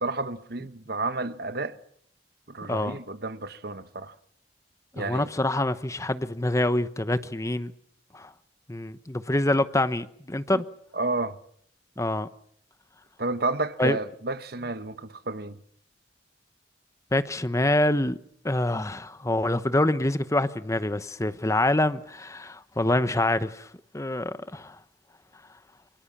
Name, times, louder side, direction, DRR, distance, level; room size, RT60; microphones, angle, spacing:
voice 1, 0.0-1.8 2.5-4.1 5.0-5.3 10.5-10.6 10.9-11.4 13.2-15.6, right 3 dB, 60° right, 1.3 m, -31 dB
voice 2, 4.9-7.7 8.1-8.3 8.7-10.6 12.0-12.3 13.8-14.0 17.1-18.2 18.4-24.8, left 1 dB, 15° left, 1.0 m, -26 dB
27.5 x 24.5 x 7.4 m
head